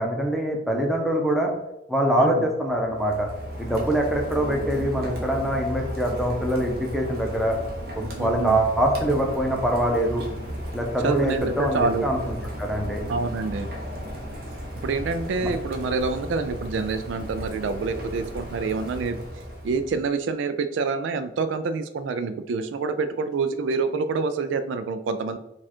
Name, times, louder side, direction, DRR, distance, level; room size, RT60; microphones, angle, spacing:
voice 1, 0.0-1.5 1.9-3.3 3.6-7.6 7.9-10.2 10.7-13.0 15.4-15.5, right 1 dB, ahead, 0 dB, 0.6 m, -24 dB
Rain, 2.8-20.1, equal, 55° right, 1.0 m, -35 dB
voice 2, 8.2-8.6 11.0-12.1 13.1-13.7 14.8-19.2 19.6-25.4, right 4 dB, 80° right, 10 dB, 0.3 m, -27 dB
4.8 x 2.4 x 4.3 m, 0.88 s
head